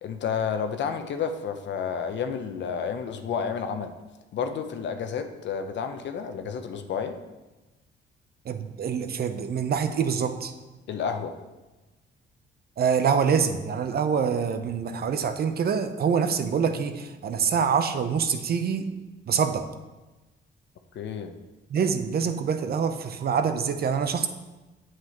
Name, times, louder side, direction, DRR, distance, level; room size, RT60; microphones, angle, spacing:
voice 1, 0.0-3.9 4.3-7.2 10.9-11.3 20.9-21.3, left 6 dB, 65° left, 7 dB, 0.7 m, -30 dB
voice 2, 8.5-10.5 12.8-18.8 19.3-19.6 21.7-24.3, right 6 dB, 50° right, 9 dB, 0.7 m, -25 dB
8.3 x 7.5 x 3.0 m, 1.1 s
cardioid pair, 90°, 20 cm